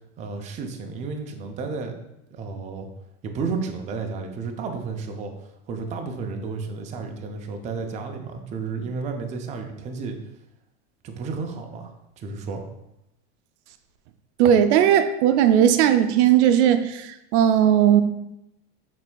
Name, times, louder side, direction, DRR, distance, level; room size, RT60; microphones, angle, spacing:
voice 1, 0.2-1.9 2.3-2.9 3.2-10.2 11.0-12.7, right 4 dB, 20° right, 4 dB, 0.4 m, -32 dB
voice 2, 14.4-18.0, right 10 dB, 80° right, 9 dB, 0.5 m, -17 dB
6.0 x 3.3 x 2.2 m, 0.87 s
supercardioid pair, 130°, 34 cm